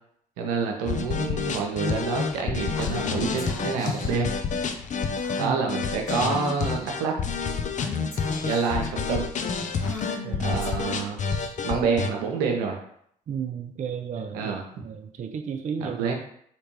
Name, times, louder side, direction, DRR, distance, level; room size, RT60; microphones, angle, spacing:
voice 1, 0.4-4.3 5.4-7.1 8.4-9.3 10.4-11.2 11.6-12.8 14.3-14.6 15.8-16.1, right 5 dB, 80° right, 1 dB, 0.7 m, -27 dB
sound 1, 0.9-12.1, left 5 dB, 40° left, 0.5 m, -29 dB
Female speech woman speaking / Whispering, 2.8-4.2 5.2-5.7 6.1-6.2 6.5-7.0 7.8-8.9 9.8-11.8, left 2 dB, 70° left, 1.2 m, -39 dB
voice 2, 10.2-10.6 11.4-11.5 13.3-16.0, right 7 dB, 40° right, 6 dB, 0.4 m, -33 dB
3.3 x 2.9 x 3.1 m, 0.67 s
hypercardioid pair, 45°, 19 cm